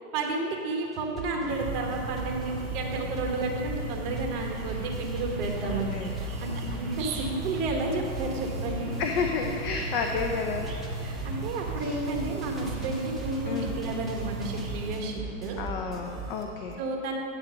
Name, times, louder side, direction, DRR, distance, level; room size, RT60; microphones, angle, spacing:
voice 1, 0.1-8.9 11.0-15.6 16.8-17.1, right 2 dB, 40° right, 1 dB, 1.3 m, -32 dB
sound 1, 0.9-16.4, right 3 dB, ahead, 0.6 m, -40 dB
sound 2, 1.5-15.0, right 2 dB, 60° right, 1.6 m, -36 dB
voice 2, 5.6-6.2 9.0-10.7 11.8-12.0 13.5-13.8 15.6-16.8, left 5 dB, 40° left, 3 dB, 0.5 m, -31 dB
9.1 x 4.4 x 6.1 m, 2.4 s
hypercardioid pair, 145°, 43 cm